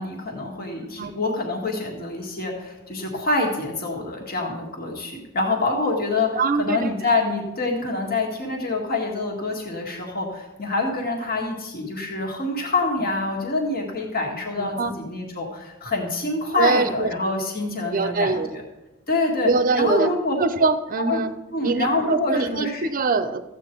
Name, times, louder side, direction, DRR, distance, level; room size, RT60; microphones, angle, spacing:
voice 1, 0.0-18.6 19.1-20.4 21.1-21.2 21.5-22.9, left 2 dB, 45° left, 0 dB, 1.9 m, -26 dB
voice 2, 6.3-6.9 14.6-15.0 16.6-17.1 17.9-18.5 19.4-20.1 20.4-21.3 21.6-23.4, right 4 dB, 40° right, 12 dB, 0.6 m, -23 dB
14.0 x 8.4 x 4.5 m, 1.0 s
head